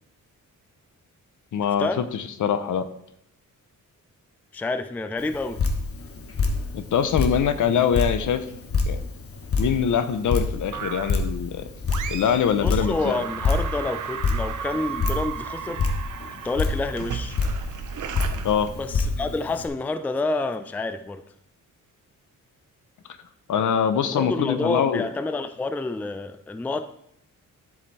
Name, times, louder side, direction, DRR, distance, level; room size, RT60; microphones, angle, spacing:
voice 1, 1.5-2.9 6.7-8.5 8.9-9.0 9.6-11.7 12.1-13.2 18.4-18.7 23.5-25.1, left 8 dB, 70° left, 0.8 m, -23 dB
voice 2, 4.5-5.6 12.6-15.8 16.3-17.4 18.8-21.2 24.0-26.9, left 2 dB, 5° left, 0.3 m, -28 dB
Drip, 5.2-19.7, left 3 dB, 45° left, 1.2 m, -28 dB
sound 1, 10.7-11.3 11.9-12.5 12.8-19.3, right 8 dB, 70° right, 0.8 m, -35 dB
11.0 x 4.9 x 4.2 m
cardioid pair, 115°, 32 cm